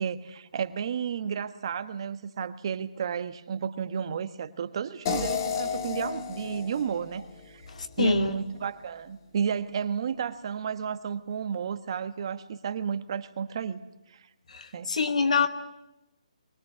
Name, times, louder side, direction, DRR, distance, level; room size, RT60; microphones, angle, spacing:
voice 1, 0.0-7.6 8.0-13.8 14.1-14.3 14.7-14.9, right 7 dB, 40° right, 11 dB, 1.3 m, -32 dB
sound 1, 5.1-8.1, left 7 dB, 30° left, 2.0 m, -33 dB
voice 2, 7.7-8.3 14.5-15.5, left 4 dB, 65° left, 7 dB, 2.4 m, -25 dB
23.0 x 18.0 x 9.8 m, 0.93 s
hypercardioid pair, 160°, 4 cm